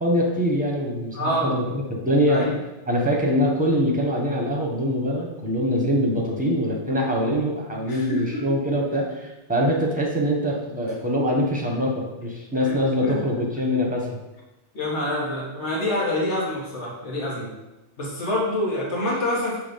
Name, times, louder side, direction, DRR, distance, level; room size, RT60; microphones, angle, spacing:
voice 1, 0.0-1.6 1.9-2.6 2.9-14.1, equal, 10° right, -1 dB, 1.0 m, -23 dB
voice 2, 1.1-1.6 2.3-2.6 7.9-8.5 12.6-13.2 14.7-17.5 18.0-19.6, left 1 dB, 80° left, -4 dB, 1.5 m, -27 dB
6.2 x 3.0 x 5.2 m, 1.0 s
omnidirectional pair, 1.2 m